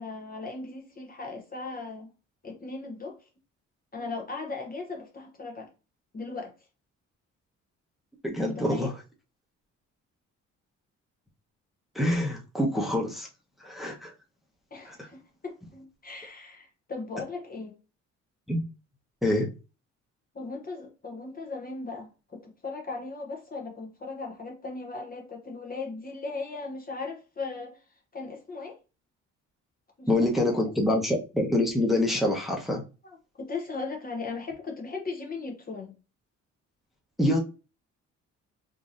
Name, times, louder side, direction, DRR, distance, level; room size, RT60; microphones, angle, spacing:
voice 1, 0.0-2.1 2.4-3.2 3.9-5.7 6.1-6.5 8.4-8.9 14.7-17.7 20.3-27.8 28.1-28.8 30.0-30.1 30.9-31.0 33.0-35.9, left 3 dB, 30° left, 0.8 m, -37 dB
voice 2, 8.2-8.9 11.9-13.3 13.6-14.1 14.9-15.1 18.5-18.6 19.2-19.5 30.1-32.8 37.2-37.4, left 1 dB, ahead, 0.9 m, -26 dB
3.7 x 2.7 x 2.5 m
cardioid pair, 90°, 30 cm